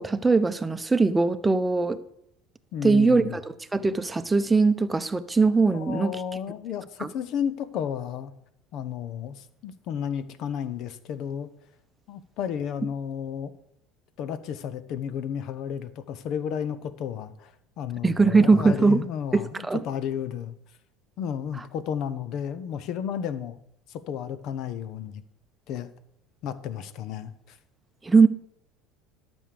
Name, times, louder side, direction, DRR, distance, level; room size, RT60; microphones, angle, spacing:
voice 1, 0.0-2.0 2.8-3.4 3.7-6.2 7.0-7.1 18.0-19.0 19.3-19.8 28.0-28.3, right 4 dB, 15° right, 11 dB, 0.8 m, -21 dB
voice 2, 2.7-3.4 5.7-8.3 8.7-11.5 12.1-13.5 14.2-20.5 21.2-23.6 23.9-25.2 25.7-25.9 26.4-27.6, left 8 dB, 55° left, 14 dB, 1.0 m, -32 dB
12.0 x 6.3 x 6.8 m, 0.75 s
hypercardioid pair, 70°, 0 cm